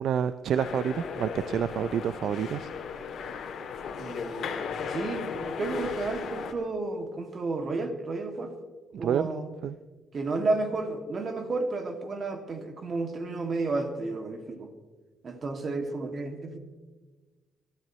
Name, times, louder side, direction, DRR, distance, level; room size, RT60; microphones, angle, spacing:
voice 1, 0.0-2.7 3.1-3.4 8.9-9.3 9.6-9.7, right 8 dB, 70° right, 13 dB, 0.4 m, -28 dB
sound 1, 0.6-6.5, left 6 dB, 65° left, 1.8 m, -36 dB
voice 2, 4.0-8.5 9.0-9.5 10.1-14.7 15.2-16.6, right 3 dB, 45° right, 5 dB, 2.2 m, -32 dB
25.0 x 13.5 x 3.1 m, 1.3 s
cardioid pair, 90°, 0 cm